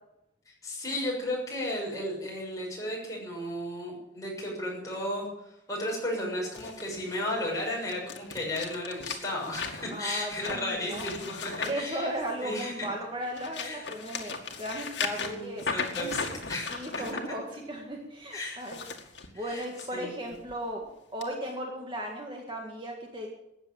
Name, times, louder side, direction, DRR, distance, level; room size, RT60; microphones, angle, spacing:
voice 1, 0.5-5.3 5.7-12.1 12.4-12.9 13.6-13.9 15.1-16.7 18.3-18.6 19.3-19.6 19.9-20.2, left 1 dB, 20° left, -3 dB, 6.6 m, -34 dB
sound 1, 6.5-12.7 13.1-17.2 18.5-19.9 20.3-20.6 21.2-21.3, left 5 dB, 70° left, 2.1 m, -37 dB
voice 2, 9.9-11.1 11.6-15.7 15.9-16.3 16.7-18.8 19.3-20.9 21.1-23.3, equal, 25° right, 1 dB, 1.9 m, -36 dB
14.5 x 9.6 x 8.8 m, 0.86 s
head